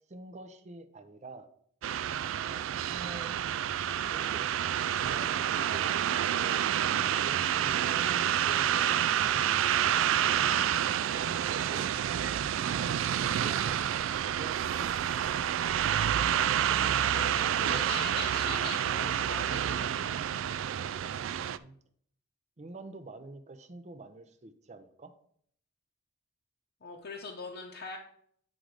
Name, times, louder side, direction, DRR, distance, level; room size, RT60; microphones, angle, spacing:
voice 1, 0.1-1.5 2.4-3.4 4.0-4.6 4.9-10.5 11.1-11.9 12.7-14.1 14.3-15.4 21.3-21.8 22.6-25.1, right 2 dB, 35° right, 10 dB, 0.6 m, -47 dB
sound 1, 1.8-21.6, right 10 dB, 70° right, 0.3 m, -29 dB
voice 2, 17.1-20.2 26.8-28.0, left 4 dB, 55° left, -1 dB, 0.8 m, -41 dB
8.8 x 3.8 x 4.8 m, 0.64 s
head